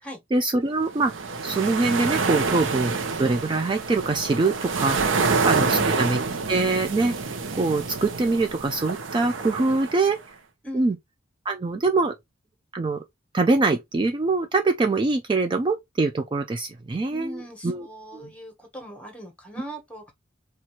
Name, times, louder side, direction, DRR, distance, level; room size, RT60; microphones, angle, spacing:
voice 1, 0.3-2.9 3.2-10.3 10.7-11.0 11.5-12.1 12.7-13.0 13.3-17.9 18.1-18.3, right 3 dB, 25° right, 0.3 m, -24 dB
sound 1, 0.9-10.2, right 4 dB, 70° right, 0.7 m, -27 dB
voice 2, 10.6-11.0 17.1-20.1, equal, 5° left, 1.2 m, -40 dB
4.2 x 2.4 x 2.9 m
head